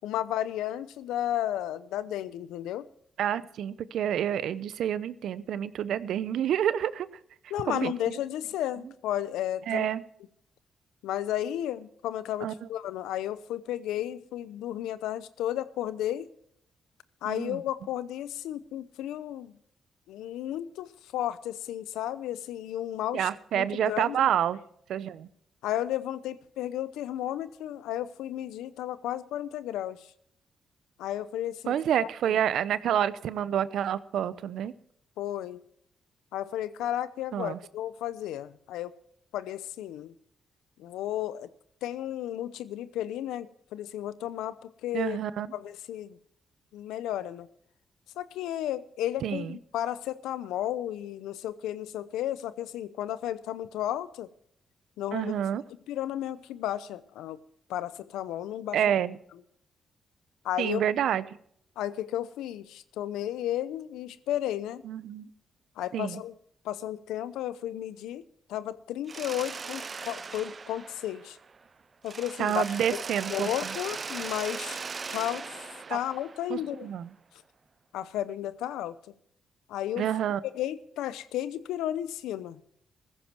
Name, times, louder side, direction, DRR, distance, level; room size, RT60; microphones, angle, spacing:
voice 1, 0.0-2.9 7.5-9.9 11.0-16.3 17.2-19.5 20.1-23.3 23.5-24.2 25.6-30.1 31.0-32.1 35.2-35.6 36.3-38.9 39.3-40.1 40.8-41.5 41.8-45.2 45.5-46.2 46.7-47.5 48.2-54.3 55.0-55.3 55.9-57.4 57.7-58.9 60.4-60.8 61.8-64.8 65.8-66.3 66.6-68.2 68.5-71.4 72.0-72.6 72.9-73.0 73.3-74.8 75.1-75.5 75.9-76.9 77.9-79.0 79.7-80.1 80.5-82.6, left 12 dB, 85° left, 16 dB, 0.8 m, -33 dB
voice 2, 3.2-7.1 7.7-7.9 9.7-10.0 12.4-12.5 17.2-17.6 23.1-24.6 24.9-25.3 31.7-34.7 37.3-37.6 44.9-45.5 49.2-49.6 55.1-55.6 58.7-59.2 60.6-61.4 64.8-65.3 65.9-66.2 72.4-73.7 75.9-76.0 76.5-77.1 80.0-80.4, right 10 dB, 75° right, 17 dB, 0.8 m, -28 dB
Mechanisms, 69.1-71.7 72.0-76.9, right 5 dB, 45° right, 0.6 m, -39 dB
15.5 x 14.5 x 4.5 m, 0.68 s
supercardioid pair, 55°, 0 cm